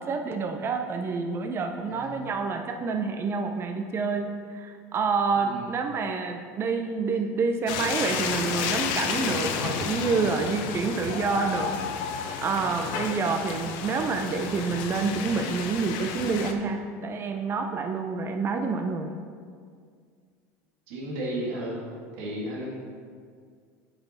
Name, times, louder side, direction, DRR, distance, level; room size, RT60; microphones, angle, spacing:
voice 1, 0.0-11.7 12.4-19.1, right 4 dB, 30° right, 5 dB, 0.6 m, -28 dB
voice 2, 5.4-5.7 20.9-21.8 22.1-22.7, right 1 dB, 75° right, -4 dB, 1.8 m, -33 dB
sound 1, 7.7-16.5, left 6 dB, 65° left, 0.8 m, -31 dB
9.6 x 5.7 x 4.1 m, 2.1 s
supercardioid pair, 100°, 8 cm